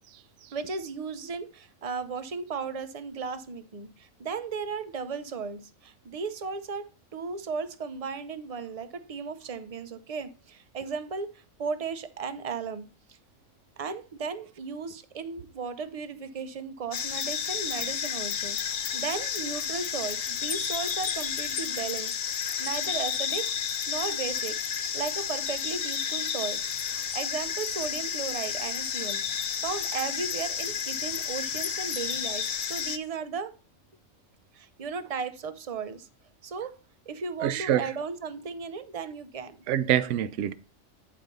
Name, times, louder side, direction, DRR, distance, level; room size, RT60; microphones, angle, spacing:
voice 1, 0.5-6.9 7.1-13.2 13.8-18.6 18.9-23.5 23.9-24.6 24.9-26.6 27.1-29.2 29.6-33.5 34.5-36.1 36.4-36.7 37.1-39.6, right 5 dB, 45° right, 0.5 m, -35 dB
sound 1, 16.9-33.0, left 8 dB, 55° left, 0.7 m, -31 dB
voice 2, 37.4-37.9 39.7-40.5, right 11 dB, 70° right, 0.8 m, -25 dB
9.4 x 4.2 x 5.2 m
omnidirectional pair, 1.4 m